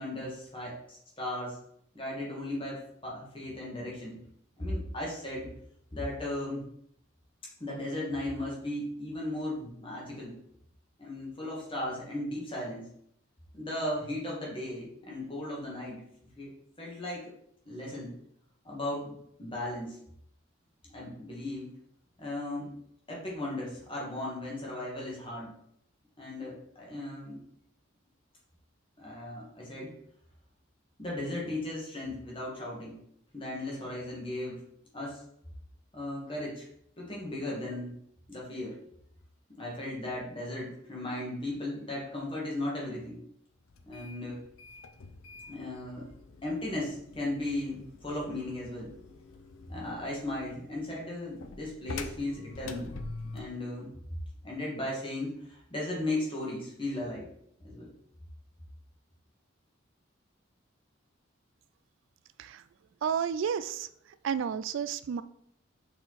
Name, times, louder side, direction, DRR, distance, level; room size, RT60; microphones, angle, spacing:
voice 1, 0.0-1.6 1.9-4.2 4.6-5.5 5.9-6.6 7.6-10.3 11.0-12.9 13.5-16.0 16.4-16.5 16.8-17.3 17.7-18.1 18.6-20.0 20.9-21.7 22.2-22.7 23.1-25.5 26.2-27.4 29.0-29.9 31.0-33.0 33.3-34.6 34.9-35.2 35.9-36.7 37.0-37.9 38.3-38.8 39.6-43.2 43.9-44.4 45.5-46.1 46.4-48.9 49.7-52.9 53.3-53.9 54.4-57.3 57.6-57.9, left 1 dB, 25° left, -4 dB, 1.8 m, -36 dB
sound 1, 43.7-53.6, left 3 dB, 85° left, 0.6 m, -46 dB
voice 2, 63.0-63.9 64.2-65.2, right 7 dB, 70° right, 14 dB, 0.3 m, -31 dB
5.7 x 4.4 x 4.1 m, 0.70 s
head